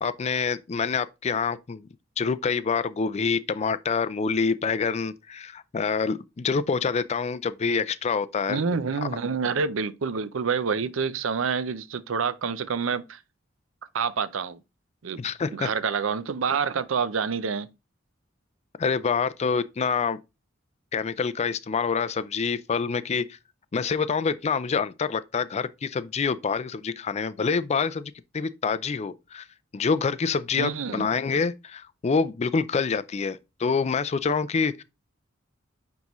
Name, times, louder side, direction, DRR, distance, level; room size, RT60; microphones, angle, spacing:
voice 1, 0.0-1.9 2.2-8.6 15.2-15.7 18.8-20.2 20.9-23.2 23.7-29.5 29.7-34.7, left 5 dB, 35° left, 0.4 m, -26 dB
voice 2, 8.5-13.2 13.9-14.6 15.0-15.2 15.5-17.7 30.6-31.1, right 5 dB, 75° right, 0.6 m, -27 dB
9.3 x 3.6 x 3.0 m
head